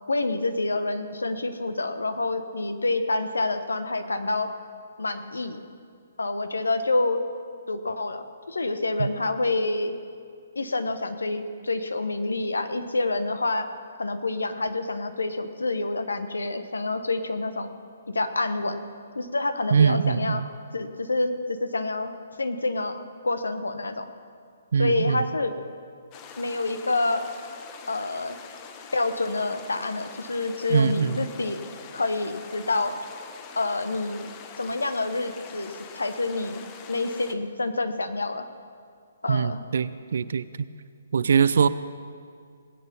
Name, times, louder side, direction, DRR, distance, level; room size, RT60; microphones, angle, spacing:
voice 1, 0.1-4.5 5.0-5.6 6.2-7.2 7.7-9.9 10.5-13.7 14.0-17.8 18.1-18.8 19.1-20.4 20.7-22.1 22.4-23.0 23.2-24.1 24.8-25.5 26.4-27.3 27.9-28.4 28.9-31.6 31.9-32.9 33.5-34.3 34.6-36.6 36.9-38.5 39.2-39.6, left 2 dB, 75° left, 9 dB, 1.1 m, -27 dB
voice 2, 19.7-20.4 24.7-25.2 30.7-31.2 39.3-40.4 41.1-41.7, right 6 dB, 60° right, 15 dB, 0.5 m, -22 dB
quiet stream, 26.1-37.3, left 6 dB, 25° left, 1.0 m, -44 dB
20.0 x 8.7 x 5.4 m, 2.3 s
figure-of-eight pair, 130°, 0 cm